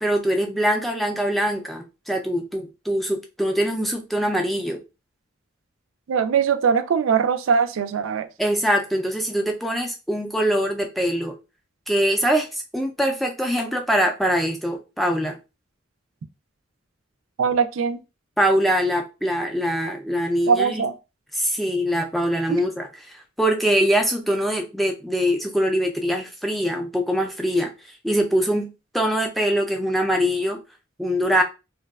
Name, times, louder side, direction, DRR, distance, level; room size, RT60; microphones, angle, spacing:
voice 1, 0.0-4.8 8.4-11.3 11.9-15.4 18.4-20.8 21.4-28.7 28.9-30.6 31.0-31.4, equal, ahead, 0.3 m, -23 dB
voice 2, 6.1-8.3 17.4-18.0 20.5-20.9 22.5-22.6, right 6 dB, 90° right, 0.3 m, -21 dB
2.6 x 2.2 x 2.2 m
head